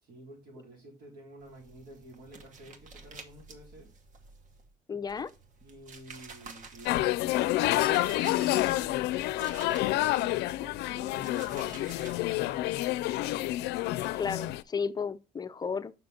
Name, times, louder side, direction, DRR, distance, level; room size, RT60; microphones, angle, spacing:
voice 1, 0.0-3.9 5.6-13.0 13.3-13.4, right 1 dB, 75° right, 4.1 m, -51 dB
sound 1, 1.4-4.7 5.1-10.1 10.5-12.2, right 4 dB, 50° right, 1.2 m, -50 dB
voice 2, 4.9-5.3 14.2-15.9, left 6 dB, 25° left, 0.5 m, -33 dB
sound 2, 6.9-14.6, left 16 dB, 85° left, 0.4 m, -28 dB
5.8 x 5.6 x 3.7 m
cardioid pair, 110°, 17 cm